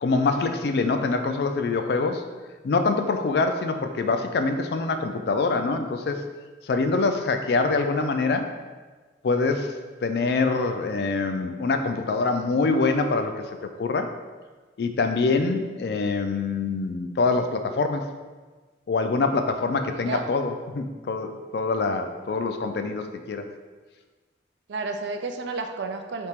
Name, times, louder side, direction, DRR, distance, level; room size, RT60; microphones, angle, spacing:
voice 1, 0.0-2.2 2.6-6.2 6.6-8.5 9.2-9.7 10.0-14.1 14.8-18.1 18.9-23.5, left 3 dB, 60° left, 6 dB, 0.3 m, -25 dB
voice 2, 19.9-20.3 24.7-26.3, right 3 dB, 75° right, 5 dB, 0.4 m, -31 dB
3.5 x 2.9 x 4.3 m, 1.3 s
head